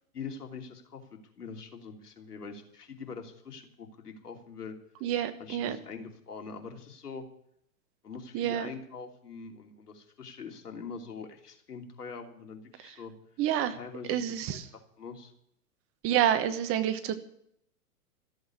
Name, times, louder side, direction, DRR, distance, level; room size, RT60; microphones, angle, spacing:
voice 1, 0.1-1.0 1.4-4.8 5.4-7.3 8.0-13.1 13.7-14.2 14.5-15.3, left 5 dB, 80° left, 4 dB, 3.1 m, -43 dB
voice 2, 5.0-5.8 8.3-8.7 13.4-13.8 14.1-14.6 16.0-17.2, right 10 dB, 30° right, 11 dB, 1.3 m, -28 dB
14.0 x 8.0 x 9.7 m, 0.71 s
hypercardioid pair, 115°, 46 cm